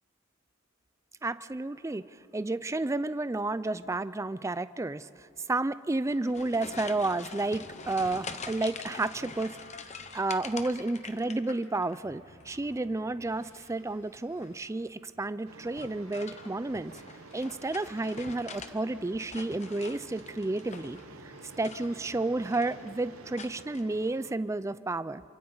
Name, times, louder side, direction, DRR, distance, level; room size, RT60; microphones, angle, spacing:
voice 1, 1.2-2.0 2.3-17.0 17.3-21.0 21.6-25.2, right 2 dB, 15° right, 15 dB, 0.4 m, -31 dB
sound 1, 6.0-12.0 12.3-12.9 14.3-14.7 15.7-18.7 19.1-21.1 21.5-22.2 22.4-22.9 23.4-23.8, left 5 dB, 35° left, 0.9 m, -45 dB
sound 2, 9.0-23.3, left 1 dB, 80° left, 6.3 m, -59 dB
sound 3, 15.5-24.3, right 3 dB, 90° right, 1.1 m, -50 dB
28.0 x 25.5 x 4.0 m, 2.8 s
head